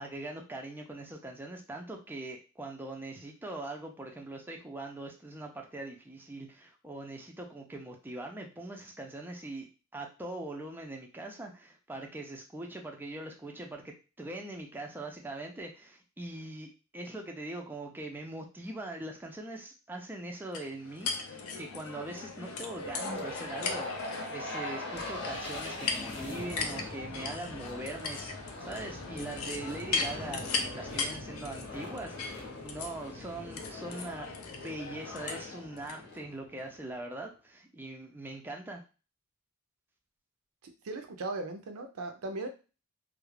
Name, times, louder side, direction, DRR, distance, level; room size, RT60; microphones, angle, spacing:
voice 1, 0.0-28.3 28.6-38.8, right 2 dB, 10° right, 1 dB, 0.3 m, -42 dB
sound 1, 20.5-36.0, left 4 dB, 80° left, 0.4 m, -38 dB
sound 2, 22.8-36.9, left 2 dB, 55° left, 0.7 m, -42 dB
voice 2, 40.6-42.5, right 2 dB, 90° right, 6 dB, 0.5 m, -38 dB
2.3 x 2.0 x 3.1 m, 0.32 s
head